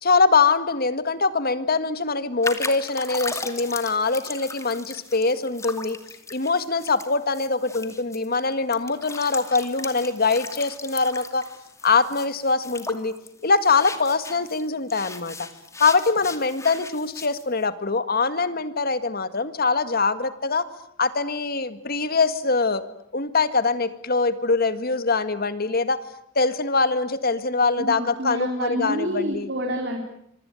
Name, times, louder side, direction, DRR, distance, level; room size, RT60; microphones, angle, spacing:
voice 1, 0.0-6.0 6.3-11.4 11.8-13.1 13.4-15.4 15.8-20.6 21.0-22.8 23.1-26.0 26.4-29.5, left 4 dB, 50° left, 12 dB, 1.9 m, -23 dB
sound 1, 2.4-14.6 14.9-17.4, left 3 dB, 15° left, 2.4 m, -37 dB
voice 2, 27.8-30.0, equal, 60° right, 2 dB, 4.2 m, -28 dB
26.0 x 24.0 x 9.1 m, 0.73 s
head